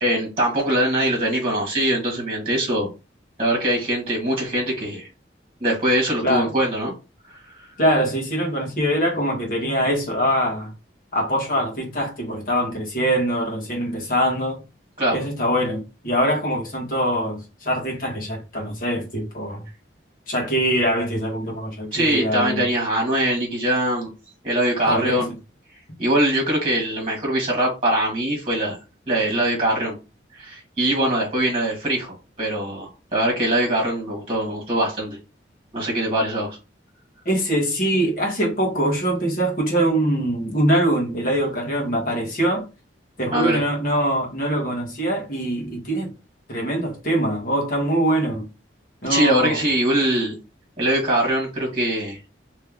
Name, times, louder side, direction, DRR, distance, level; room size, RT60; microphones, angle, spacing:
voice 1, 0.0-2.9 3.4-5.1 5.6-6.9 15.0-15.2 21.9-24.1 24.4-25.3 26.0-28.8 29.1-29.9 30.4-35.2 35.7-36.6 43.3-43.6 49.0-50.3 50.8-52.2, right 1 dB, 30° right, 1.6 m, -22 dB
voice 2, 7.8-10.7 11.1-14.6 15.1-19.6 20.3-22.6 24.9-25.3 37.2-42.6 43.2-46.1 46.5-48.5 49.0-49.6, right 1 dB, 45° left, 1.6 m, -23 dB
3.3 x 3.2 x 3.4 m
head